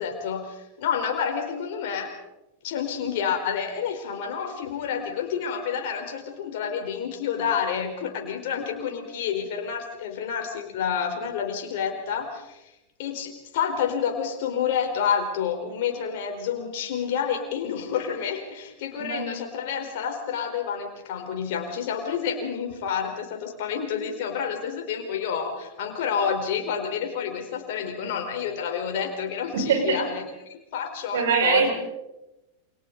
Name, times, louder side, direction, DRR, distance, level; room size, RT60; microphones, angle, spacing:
voice 1, 0.0-2.1 2.6-12.6 13.0-30.3 30.7-31.7, left 7 dB, 50° left, 4 dB, 4.4 m, -29 dB
voice 2, 18.9-19.3 29.5-30.0 31.1-31.7, right 6 dB, 60° right, 2 dB, 6.1 m, -23 dB
28.5 x 26.0 x 4.1 m, 0.95 s
figure-of-eight pair, 90°, 0 cm